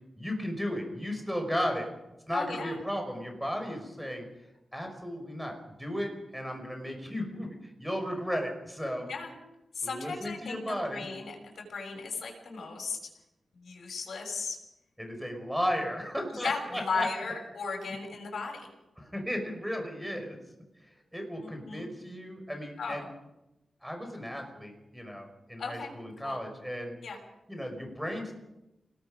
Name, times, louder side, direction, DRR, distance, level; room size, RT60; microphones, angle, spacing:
voice 1, 0.2-1.9 2.3-4.3 4.7-9.1 9.8-11.1 15.0-17.1 19.0-20.4 21.1-23.1 23.8-27.0 27.5-28.3, equal, ahead, 4 dB, 5.5 m, -35 dB
voice 2, 2.3-2.8 9.0-9.3 9.7-13.0 13.5-14.6 16.3-18.7 21.4-21.9 22.8-23.1 25.6-26.4 27.0-27.2, left 4 dB, 75° left, 1 dB, 6.4 m, -36 dB
28.5 x 19.5 x 5.2 m, 0.92 s
wide cardioid pair, 135°, 0 cm